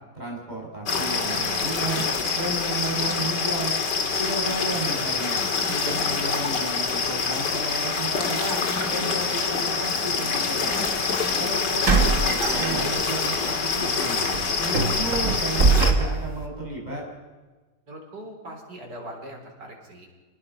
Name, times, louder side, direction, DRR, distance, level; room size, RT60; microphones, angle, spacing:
voice 1, 0.1-2.0 2.3-3.7 4.1-10.8 11.4-14.3 14.6-17.0, right 2 dB, 25° right, -2 dB, 6.4 m, -33 dB
sound 1, 0.9-15.9, left 5 dB, 85° left, 2.6 m, -26 dB
sound 2, 10.7-10.9 11.8-13.3 13.7-13.9 14.3-16.4, right 4 dB, 50° right, 2.3 m, -23 dB
voice 2, 17.9-20.1, right 1 dB, 85° right, 1 dB, 4.9 m, -41 dB
29.0 x 19.5 x 5.6 m, 1.3 s
omnidirectional pair, 1.8 m